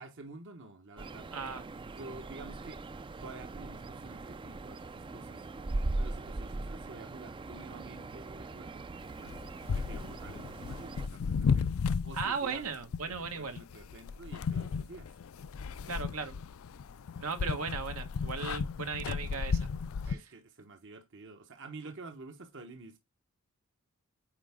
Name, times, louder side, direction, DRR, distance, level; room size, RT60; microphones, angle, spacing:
voice 1, 0.0-1.3 1.8-2.8 3.2-5.4 6.0-9.4 9.7-11.7 12.0-12.7 13.3-15.1 20.0-23.0, right 3 dB, 60° right, 1.1 m, -49 dB
sound 1, 1.0-11.1, right 2 dB, 25° right, 0.4 m, -40 dB
voice 2, 1.3-1.6 12.1-13.6 15.8-16.4 17.2-19.7 20.0-20.2 21.8-21.9, right 5 dB, 90° right, 1.6 m, -37 dB
sound 2, 9.3-20.1, left 5 dB, 70° left, 0.4 m, -34 dB
8.7 x 4.7 x 3.5 m
head